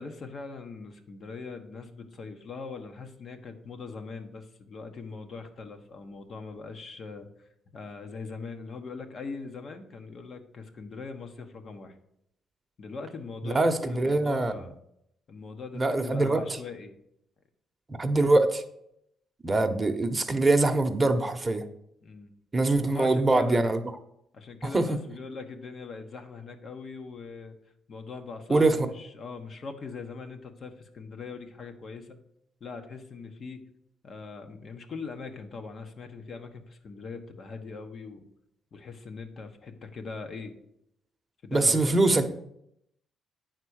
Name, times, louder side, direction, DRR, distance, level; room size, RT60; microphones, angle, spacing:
voice 1, 0.0-7.3 7.7-12.0 12.8-14.7 15.3-16.9 22.0-22.3 22.8-23.6 24.3-27.6 27.9-32.2 32.6-33.6 34.0-38.3 38.7-40.5 41.4-42.2, left 4 dB, 50° left, 6 dB, 1.3 m, -41 dB
voice 2, 13.4-14.5 15.7-16.6 18.0-18.6 19.4-21.6 22.5-23.8 24.7-25.0 28.5-28.9 41.5-42.2, right 2 dB, 20° right, 6 dB, 1.0 m, -23 dB
9.7 x 4.3 x 6.4 m, 0.77 s
cardioid pair, 90°, 0 cm